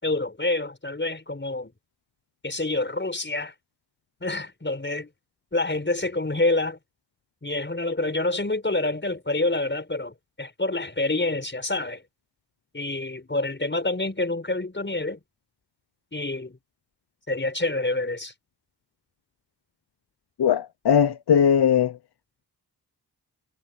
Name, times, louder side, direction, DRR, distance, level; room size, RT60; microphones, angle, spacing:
voice 1, 0.0-1.7 2.4-3.5 4.2-5.1 5.5-6.8 7.4-12.0 12.7-15.2 16.1-16.6 17.3-18.3, left 2 dB, 30° left, 5.4 m, -27 dB
voice 2, 20.4-21.9, left 8 dB, 85° left, 0.9 m, -19 dB
cardioid pair, 65°, 38 cm